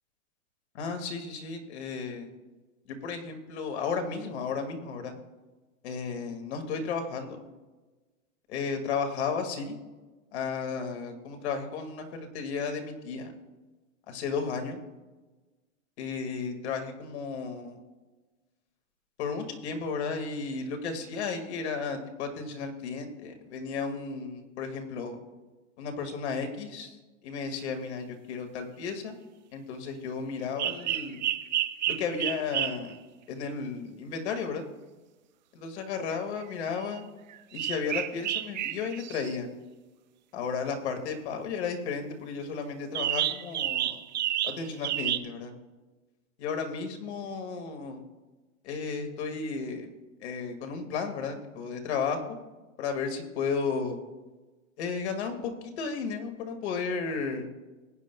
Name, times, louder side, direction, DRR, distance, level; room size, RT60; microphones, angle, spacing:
voice 1, 0.7-2.3 2.9-5.2 5.8-7.5 8.5-9.8 10.3-13.3 14.1-14.8 16.0-17.8 19.2-25.2 25.8-27.0 27.2-29.2 29.5-31.2 31.9-33.0 33.3-34.6 35.5-37.1 37.5-39.5 40.3-44.0 44.4-45.5 46.4-48.0 48.6-49.9 50.2-52.4 52.8-54.0 54.8-55.5 55.8-57.5, left 5 dB, 55° left, 5 dB, 2.0 m, -33 dB
sound 1, 30.6-32.9 36.1-36.2 36.8-37.0 37.3-39.4 42.9-45.2, right 12 dB, 35° right, 0.4 m, -30 dB
19.5 x 9.3 x 2.3 m, 1.2 s
supercardioid pair, 165°, 40 cm